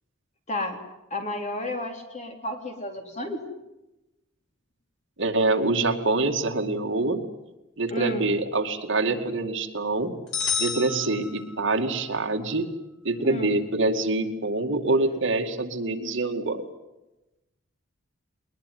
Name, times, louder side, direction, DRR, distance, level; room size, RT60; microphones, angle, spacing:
voice 1, 0.5-0.8 1.1-3.4 7.9-8.3 13.2-13.5, left 1 dB, 35° left, 4 dB, 3.5 m, -32 dB
voice 2, 5.2-7.2 7.8-10.1 10.6-12.7 13.0-16.6, right 2 dB, 60° right, 5 dB, 2.3 m, -25 dB
sound 1, 10.3-11.9, left 5 dB, 75° left, 5.5 m, -30 dB
21.5 x 21.0 x 9.6 m, 0.97 s
head